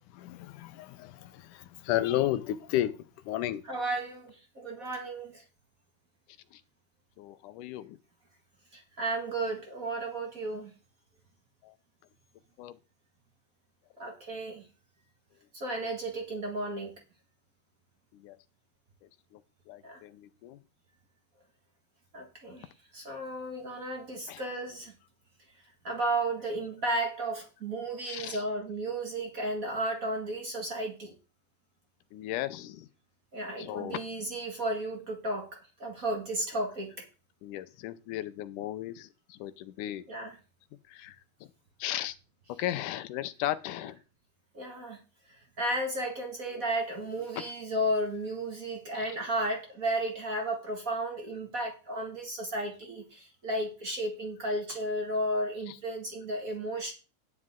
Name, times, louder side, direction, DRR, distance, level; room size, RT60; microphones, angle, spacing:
voice 1, 0.2-3.6 6.5-6.6 7.2-8.0 11.6-11.7 12.6-12.8 18.1-18.4 19.3-19.4 19.7-20.6 24.3-24.5 28.1-28.4 32.1-32.9 33.6-34.0 37.4-40.0 40.9-41.5 41.8-42.2 42.6-44.0 46.5-46.6 47.4-47.5 48.9-49.1 55.7-55.8, left 13 dB, 85° left, 12 dB, 2.3 m, -35 dB
voice 2, 3.7-5.4 8.7-10.7 14.0-14.6 15.5-16.9 19.8-20.0 22.1-24.9 25.8-31.1 33.3-37.0 40.1-40.3 44.5-45.0 45.6-56.9, right 1 dB, 35° right, 2 dB, 1.7 m, -33 dB
9.8 x 9.2 x 3.7 m, 0.33 s
omnidirectional pair, 3.5 m